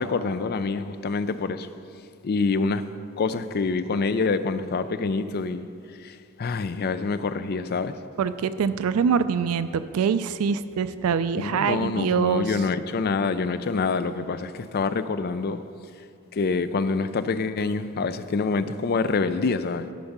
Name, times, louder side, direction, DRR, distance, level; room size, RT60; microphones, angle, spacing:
voice 1, 0.0-1.7 2.2-2.8 3.2-5.7 6.0-6.1 6.4-7.9 11.4-15.6 16.3-19.9, left 4 dB, 45° left, 12 dB, 0.4 m, -26 dB
voice 2, 8.2-12.6, right 6 dB, 85° right, 13 dB, 0.4 m, -24 dB
13.5 x 5.4 x 5.9 m, 2.4 s
head